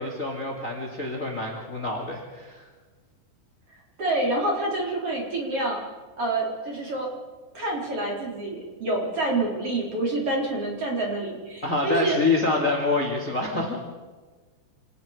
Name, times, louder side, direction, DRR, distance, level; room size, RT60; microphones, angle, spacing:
voice 1, 0.0-2.7 11.6-13.8, left 2 dB, 25° left, 1 dB, 2.2 m, -26 dB
voice 2, 4.0-5.8 6.2-7.1 7.5-12.2, right 2 dB, 35° right, -2 dB, 4.5 m, -27 dB
26.5 x 19.5 x 5.1 m, 1.4 s
omnidirectional pair, 5.1 m